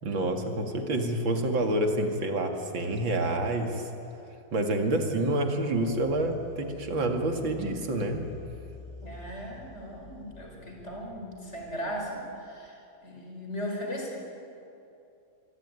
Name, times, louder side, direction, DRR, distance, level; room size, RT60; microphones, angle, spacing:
voice 1, 0.0-3.9 4.5-8.3, right 1 dB, 85° right, 4 dB, 3.2 m, -28 dB
sound 1, 5.8-12.3, left 2 dB, 30° right, 6.8 m, -48 dB
voice 2, 9.0-14.2, equal, 35° left, 0 dB, 5.3 m, -37 dB
26.0 x 22.5 x 9.9 m, 2.8 s
omnidirectional pair, 2.1 m